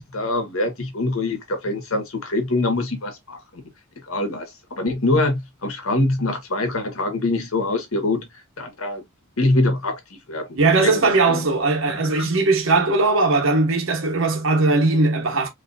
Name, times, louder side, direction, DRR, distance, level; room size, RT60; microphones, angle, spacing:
voice 1, 0.0-3.4 4.1-8.3 8.6-9.0 9.4-10.0 10.3-10.5 10.8-11.4 12.2-12.3, left 2 dB, 70° left, 1.5 m, -24 dB
voice 2, 10.5-15.5, right 3 dB, 65° right, 1.3 m, -19 dB
4.8 x 3.0 x 2.7 m
head